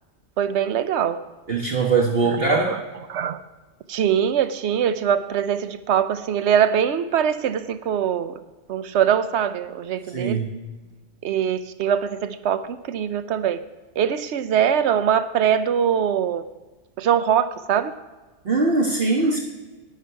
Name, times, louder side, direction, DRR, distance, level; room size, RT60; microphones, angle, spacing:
voice 1, 0.4-1.2 2.4-2.8 3.1-3.4 3.9-8.3 8.7-10.4 11.2-13.6 14.0-16.4 17.0-17.9, right 8 dB, 70° right, 12 dB, 0.9 m, -22 dB
voice 2, 1.5-2.8 10.1-10.5 18.4-19.4, right 3 dB, 55° right, -3 dB, 1.4 m, -21 dB
11.5 x 9.6 x 4.7 m, 1.2 s
omnidirectional pair, 1.2 m